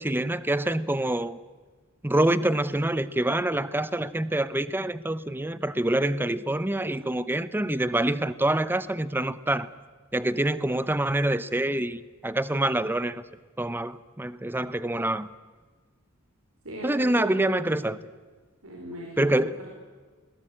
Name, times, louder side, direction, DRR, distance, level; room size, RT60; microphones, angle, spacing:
voice 1, 0.0-1.4 2.0-9.7 10.1-13.2 13.6-15.3 16.8-18.0 19.2-19.6, right 1 dB, 10° right, 16 dB, 0.7 m, -26 dB
voice 2, 16.6-17.9 18.6-19.3 19.5-19.7, equal, 80° right, -1 dB, 4.6 m, -37 dB
21.0 x 18.0 x 8.6 m, 1.4 s
head